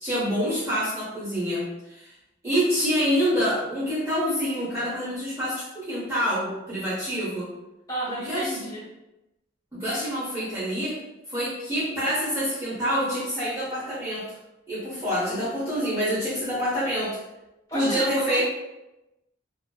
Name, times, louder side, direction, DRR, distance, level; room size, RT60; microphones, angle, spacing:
voice 1, 0.0-2.1 2.4-7.5 8.1-8.6 9.7-11.0 11.3-14.4 14.7-17.2 17.7-18.4, equal, 15° right, -11 dB, 0.7 m, -27 dB
voice 2, 7.9-8.8 17.7-18.4, right 1 dB, 20° left, -11 dB, 1.1 m, -31 dB
2.5 x 2.2 x 2.3 m, 0.96 s
head